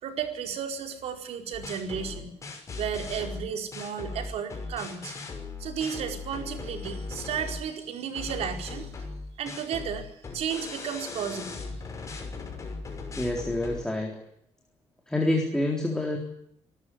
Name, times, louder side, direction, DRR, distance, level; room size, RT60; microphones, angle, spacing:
voice 1, 0.0-2.4 2.8-5.1 5.6-8.9 9.4-11.8, right 7 dB, 70° right, 5 dB, 4.6 m, -33 dB
sound 1, 1.5-7.7 8.1-13.8, left 4 dB, 30° left, 6.0 m, -38 dB
voice 2, 13.2-14.2 15.1-16.2, left 1 dB, 5° left, 1 dB, 3.9 m, -27 dB
26.5 x 14.0 x 9.8 m, 0.73 s
cardioid pair, 155°, 11 cm